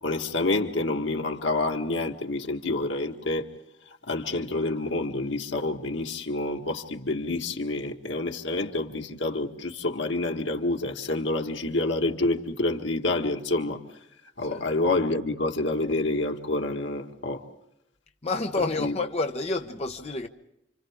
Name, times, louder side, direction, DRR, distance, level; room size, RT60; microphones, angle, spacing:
voice 1, 0.0-3.5 4.1-13.8 14.4-17.5 18.8-19.0, left 2 dB, 85° left, 1.8 m, -28 dB
voice 2, 18.2-20.3, left 3 dB, 35° left, 1.0 m, -29 dB
29.5 x 26.5 x 3.7 m
head